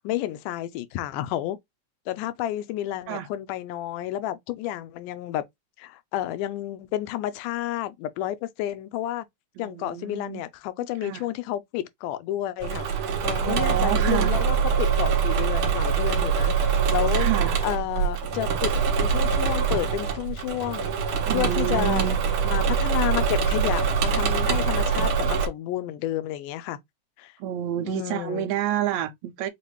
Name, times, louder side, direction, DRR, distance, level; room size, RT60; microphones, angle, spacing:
voice 1, 0.0-1.6 2.1-5.4 5.8-9.3 9.6-12.9 13.2-16.5 16.9-17.3 17.6-18.7 19.0-21.0 21.3-22.2 22.4-26.8 27.2-27.3 27.8-28.5, left 13 dB, 85° left, 2.1 m, -30 dB
voice 2, 9.6-10.4 11.0-11.2 13.4-14.3 17.2-17.6 21.3-22.2 27.4-29.5, right 10 dB, 80° right, 1.7 m, -29 dB
Engine / Mechanisms, 12.6-25.5, right 6 dB, 65° right, 1.4 m, -24 dB
5.6 x 2.5 x 3.0 m
omnidirectional pair, 3.6 m